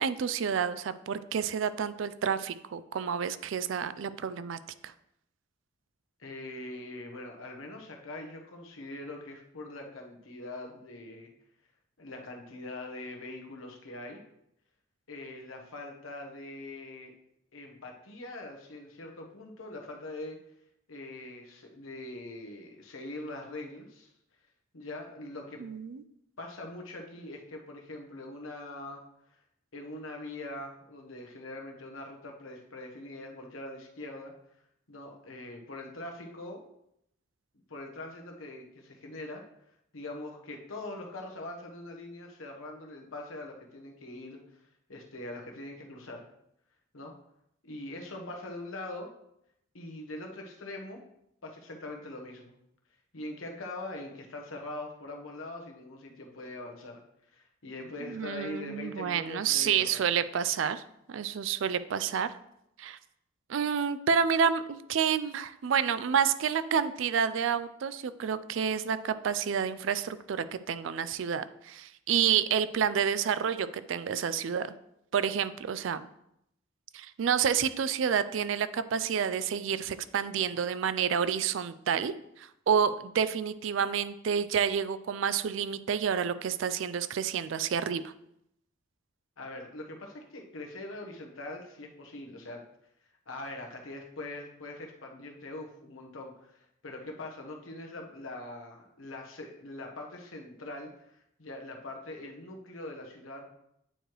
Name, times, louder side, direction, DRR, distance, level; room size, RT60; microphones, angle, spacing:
voice 1, 0.0-4.6 25.6-26.0 58.1-60.8 61.1-62.4 62.8-63.0 63.5-74.7 75.1-76.0 76.9-88.1, right 7 dB, 70° right, 14 dB, 0.4 m, -29 dB
voice 2, 6.2-11.3 12.0-14.2 15.1-17.1 17.5-20.4 20.9-24.1 24.7-25.6 26.4-29.0 29.7-34.3 34.9-36.6 37.7-39.4 39.9-44.4 44.9-46.2 46.9-47.1 47.6-49.1 49.7-51.0 51.4-52.6 53.1-57.0 57.3-60.1 89.4-92.6 93.3-103.5, left 2 dB, 90° left, 1 dB, 1.1 m, -42 dB
8.9 x 4.7 x 3.1 m, 0.78 s
head